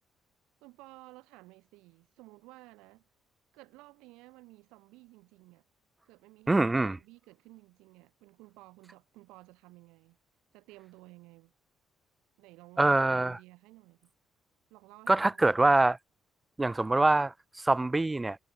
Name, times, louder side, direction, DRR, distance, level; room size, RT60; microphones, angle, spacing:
voice 1, 0.6-3.1 3.5-5.7 6.0-10.2 10.5-11.5 12.4-14.1 14.7-15.5, right 21 dB, 90° right, 2.9 m, -54 dB
voice 2, 6.5-7.0 12.8-13.4 15.1-16.0 16.6-18.4, right 2 dB, 20° right, 0.9 m, -24 dB
supercardioid pair, 65°, 0 cm